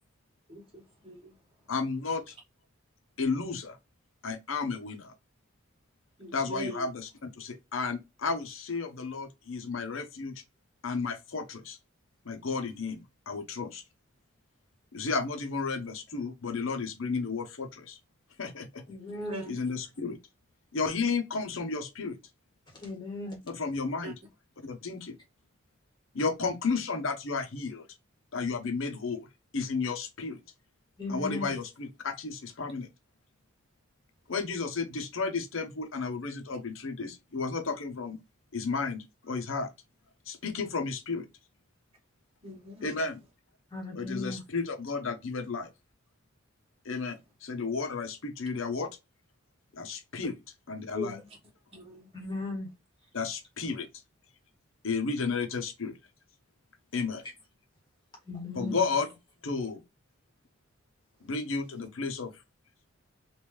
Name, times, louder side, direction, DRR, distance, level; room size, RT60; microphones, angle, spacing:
voice 1, 0.5-1.4 6.2-6.9 19.1-19.6 24.0-24.1 42.4-43.0 50.9-51.4 51.7-52.1 58.4-58.8, equal, 30° right, 1.4 m, -42 dB
voice 2, 1.7-2.3 3.2-3.8 4.2-5.1 6.3-10.4 10.8-11.8 12.2-13.8 14.9-18.0 18.4-18.8 19.5-20.2 20.7-22.2 23.5-24.1 24.6-25.2 26.1-27.9 28.3-29.3 29.5-30.4 31.1-32.9 34.3-38.2 38.5-39.7 40.3-41.3 42.8-43.2 43.9-45.7 46.8-49.0 49.7-50.4 50.7-51.2 53.1-53.9 54.8-56.0 56.9-57.2 58.5-59.1 59.4-59.8 61.2-62.4, left 4 dB, 70° left, 0.8 m, -33 dB
voice 3, 18.9-19.4 22.7-23.4 31.0-31.5 43.7-44.4 52.1-52.7 58.2-58.8, left 2 dB, 20° left, 1.6 m, -37 dB
3.5 x 2.5 x 3.0 m
head